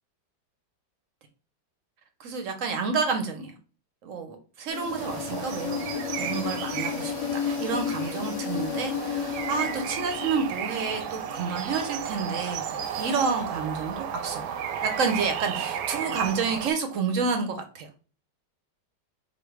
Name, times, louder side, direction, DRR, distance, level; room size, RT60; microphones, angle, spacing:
voice 1, 2.2-3.5 4.0-14.4 14.8-17.9, right 5 dB, 65° right, 5 dB, 0.8 m, -30 dB
sound 1, 4.7-12.2, left 8 dB, 70° left, 1.0 m, -33 dB
sound 2, 4.9-16.7, right 8 dB, 85° right, 1.4 m, -34 dB
4.1 x 2.6 x 4.8 m, 0.38 s
omnidirectional pair, 2.1 m